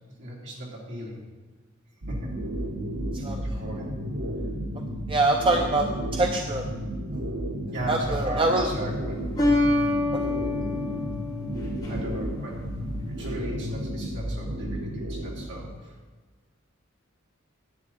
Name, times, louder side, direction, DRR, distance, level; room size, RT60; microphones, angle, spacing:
voice 1, 0.2-1.2 2.1-2.3 3.3-3.9 7.7-9.2 11.9-12.6 13.1-15.9, right 1 dB, 60° right, -4 dB, 3.0 m, -37 dB
sound 1, 2.0-15.8, equal, 80° right, 1.1 m, -32 dB
voice 2, 5.1-5.8 6.1-6.6 7.9-8.7, right 2 dB, 25° right, 2 dB, 0.6 m, -23 dB
sound 2, 8.2-8.7 9.4-12.3, left 2 dB, 20° left, 2.7 m, -27 dB
10.5 x 9.2 x 4.2 m, 1.4 s
head